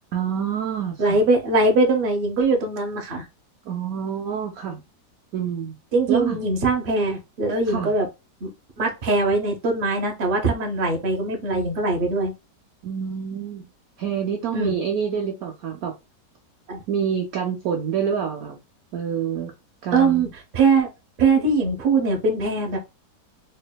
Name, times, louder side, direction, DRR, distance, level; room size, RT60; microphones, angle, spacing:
voice 1, 0.1-1.2 3.6-4.8 5.3-5.8 6.1-6.4 7.7-7.9 12.8-13.6 14.0-15.9 16.9-18.6 18.9-19.5 19.8-20.3, right 8 dB, 70° right, 0.9 m, -27 dB
voice 2, 1.0-3.2 5.9-8.1 8.4-8.5 8.8-12.3 14.5-14.7 16.7-16.8 19.9-20.3 20.5-20.9 21.2-22.8, right 3 dB, 40° right, 0.8 m, -21 dB
4.4 x 2.7 x 2.2 m
omnidirectional pair, 1.9 m